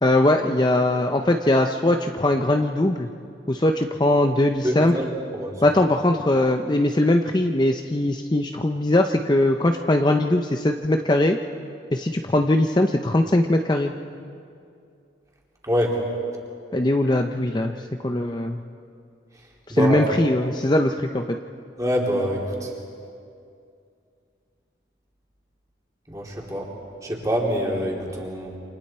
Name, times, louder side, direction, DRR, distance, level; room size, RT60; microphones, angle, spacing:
voice 1, 0.0-3.1 3.5-4.9 5.6-11.4 11.9-13.9 16.7-18.6 19.7-21.4, left 1 dB, 25° left, 4 dB, 0.6 m, -21 dB
voice 2, 4.6-5.1 5.3-5.6 15.6-16.0 19.7-20.0 21.8-22.7 26.1-26.7 27.0-28.6, equal, 20° right, -2 dB, 3.2 m, -25 dB
28.5 x 27.0 x 4.4 m, 2.5 s
head